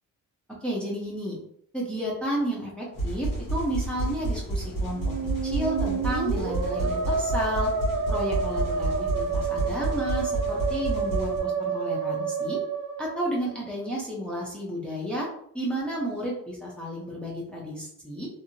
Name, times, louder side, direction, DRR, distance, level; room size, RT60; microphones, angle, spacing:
voice 1, 0.6-1.4 1.7-5.0 5.4-7.7 8.1-12.6 13.0-15.3 15.5-18.3, equal, 5° left, -5 dB, 0.7 m, -32 dB
sound 1, 2.9-11.4, right 2 dB, 75° left, 1.4 m, -30 dB
Musical instrument, 4.9-13.7, right 5 dB, 65° right, 0.5 m, -29 dB
2.8 x 2.6 x 2.6 m, 0.68 s
wide cardioid pair, 140°, 32 cm